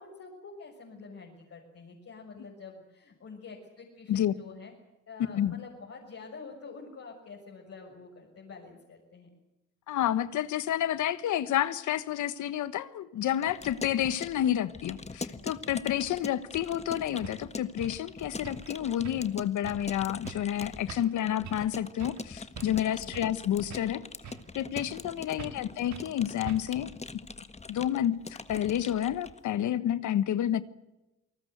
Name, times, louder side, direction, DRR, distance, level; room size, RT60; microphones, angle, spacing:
voice 1, 0.0-4.7 5.1-9.3 16.0-16.3 22.8-23.3 25.4-25.6, left 4 dB, 50° left, -2 dB, 6.4 m, -47 dB
voice 2, 9.9-24.1 24.5-26.9 27.7-30.6, left 11 dB, 75° left, 15 dB, 1.3 m, -30 dB
Keyboard (musical) / Computer keyboard, 13.3-29.4, left 3 dB, 20° left, 1.5 m, -43 dB
sound 1, 16.8-16.9 17.2-17.4 17.8-18.0 18.4-18.7 19.0-19.4 19.6-19.9 20.2-20.5 20.9-21.2 21.4-21.7 22.0-22.2 22.6-23.4 23.7-24.5 24.8-25.1 25.4-25.6 25.9-26.1 26.5-26.8, right 7 dB, 65° right, 2.0 m, -44 dB
28.0 x 19.5 x 7.9 m, 0.98 s
cardioid pair, 90°, 30 cm